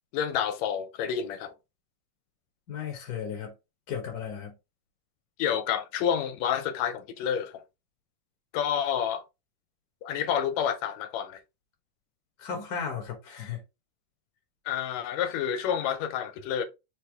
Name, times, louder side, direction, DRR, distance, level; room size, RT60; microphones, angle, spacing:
voice 1, 0.1-1.5 5.4-7.6 8.5-9.2 10.0-11.4 14.7-16.6, left 8 dB, 80° left, 1.7 m, -29 dB
voice 2, 2.7-3.5 3.9-4.5 12.4-13.6, left 7 dB, 55° left, 1.0 m, -35 dB
4.2 x 3.3 x 3.3 m
omnidirectional pair, 3.3 m